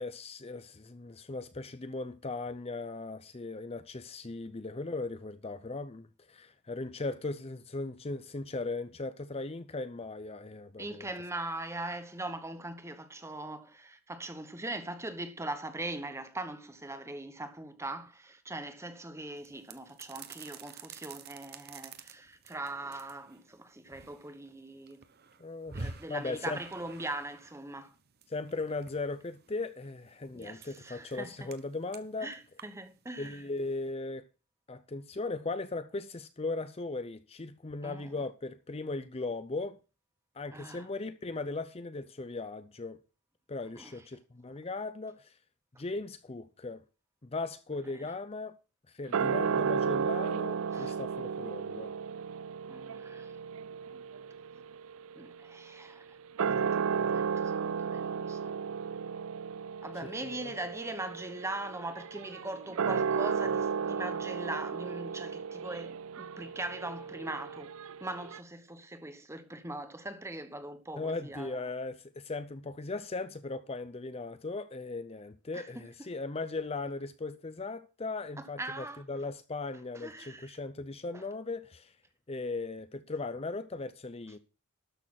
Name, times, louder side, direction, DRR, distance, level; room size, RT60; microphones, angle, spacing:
voice 1, 0.0-11.1 25.4-26.6 28.3-32.3 33.2-34.3 34.7-39.8 40.4-43.0 43.5-45.3 45.8-46.8 47.2-48.5 48.9-51.9 60.4-60.5 71.0-81.9 82.3-84.4, left 3 dB, 25° left, 0.6 m, -38 dB
voice 2, 10.8-25.0 25.7-27.9 30.3-31.5 32.2-33.4 37.8-38.1 40.5-40.9 43.8-44.0 48.0-48.1 50.7-50.9 52.7-53.3 55.2-56.2 56.5-58.5 59.8-71.6 75.5-75.9 78.4-79.0 79.9-80.6 81.1-81.3, right 2 dB, 10° right, 1.0 m, -41 dB
sound 1, 19.4-33.9, right 4 dB, 45° right, 1.0 m, -50 dB
sound 2, 49.1-55.8 56.2-68.4, right 6 dB, 65° right, 0.4 m, -34 dB
12.5 x 6.7 x 5.8 m
head